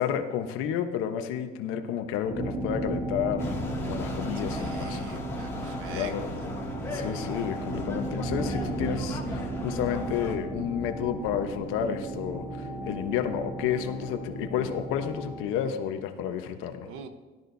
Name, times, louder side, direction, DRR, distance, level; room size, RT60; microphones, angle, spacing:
voice 1, 0.0-5.0 5.9-6.3 6.9-16.9, left 9 dB, 80° left, 7 dB, 1.1 m, -31 dB
sound 1, 2.2-15.6, right 2 dB, 25° right, 3.2 m, -35 dB
sound 2, 3.4-10.4, left 2 dB, 10° left, 2.3 m, -37 dB
voice 2, 4.5-6.1 6.8-7.1 16.9-17.1, right 7 dB, 80° right, 9 dB, 1.1 m, -44 dB
17.5 x 12.5 x 2.8 m, 1.3 s
cardioid pair, 135°, 21 cm